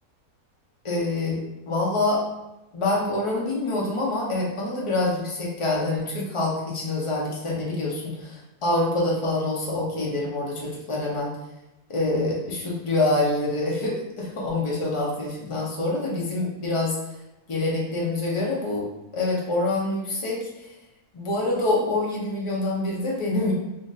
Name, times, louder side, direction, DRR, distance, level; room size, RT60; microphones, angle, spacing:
voice 1, 0.8-2.2 2.7-11.3 11.9-17.0 17.5-18.9 19.1-20.7 21.1-23.5, left 2 dB, 45° left, -4 dB, 0.4 m, -26 dB
2.8 x 2.5 x 3.9 m, 0.97 s
omnidirectional pair, 1.7 m